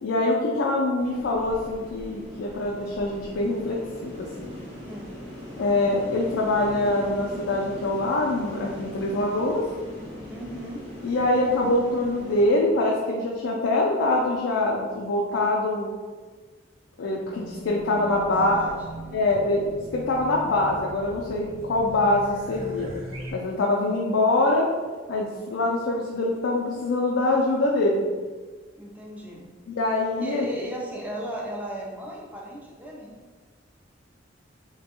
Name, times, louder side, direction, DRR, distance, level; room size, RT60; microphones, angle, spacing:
voice 1, 0.0-4.5 5.6-9.6 11.0-15.9 17.0-18.6 19.1-19.6 19.9-22.9 23.3-24.7 25.1-28.0 29.7-30.5, left 2 dB, 75° left, -3 dB, 0.4 m, -24 dB
sound 1, 1.0-12.5, equal, 30° right, 1.0 m, -40 dB
voice 2, 10.3-10.8 18.0-18.8 28.8-29.5 30.2-33.1, equal, 10° right, -3 dB, 0.5 m, -36 dB
Race car auto racing / Alarm, 17.1-23.3, right 1 dB, 85° right, 0.6 m, -40 dB
3.1 x 2.2 x 2.9 m, 1.4 s
head